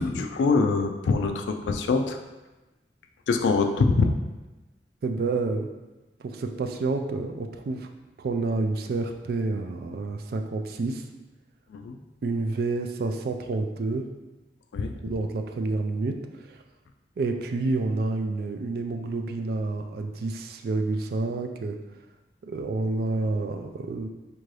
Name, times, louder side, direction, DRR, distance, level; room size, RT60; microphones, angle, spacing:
voice 1, 0.0-2.2 3.3-4.2 11.7-12.0 14.7-14.9, left 4 dB, 85° left, 5 dB, 0.3 m, -24 dB
voice 2, 5.0-5.7 6.2-7.9 8.2-11.0 12.2-14.1 14.9-16.6 17.2-21.8 22.4-24.1, right 3 dB, 60° right, 5 dB, 0.3 m, -29 dB
4.4 x 2.6 x 3.2 m, 1.1 s
head